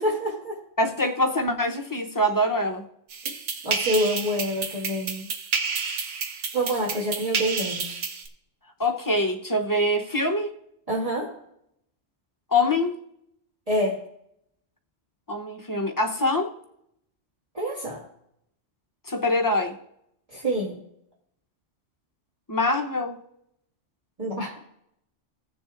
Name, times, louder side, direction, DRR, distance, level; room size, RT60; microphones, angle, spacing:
voice 1, 0.0-0.6 3.6-5.3 6.5-8.0 10.9-11.3 13.7-14.0 17.5-18.0 20.3-20.8 24.2-24.6, equal, 30° right, -4 dB, 1.9 m, -27 dB
voice 2, 0.8-2.8 8.8-10.5 12.5-13.0 15.3-16.5 19.1-19.8 22.5-23.1, left 1 dB, 20° left, 3 dB, 0.7 m, -24 dB
sound 1, 3.1-8.3, right 5 dB, 75° right, 1.2 m, -30 dB
17.0 x 6.9 x 2.5 m, 0.75 s
omnidirectional pair, 1.3 m